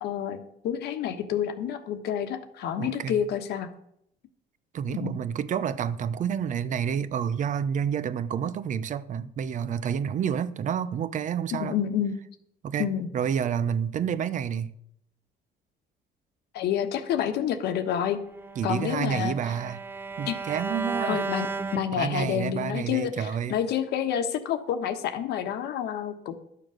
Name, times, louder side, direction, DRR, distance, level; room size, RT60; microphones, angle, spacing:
voice 1, 0.0-3.7 4.9-5.2 11.5-12.2 12.8-13.1 16.5-18.2 18.6-19.3 20.3-20.4 21.0-26.3, left 9 dB, 75° left, 1.2 m, -29 dB
voice 2, 2.8-3.2 4.7-11.8 12.6-14.7 18.6-19.8 20.2-21.2 21.9-23.5, right 8 dB, 50° right, 0.7 m, -29 dB
Bowed string instrument, 18.3-22.5, right 4 dB, 10° right, 0.4 m, -34 dB
12.0 x 6.9 x 6.4 m
cardioid pair, 110°, 17 cm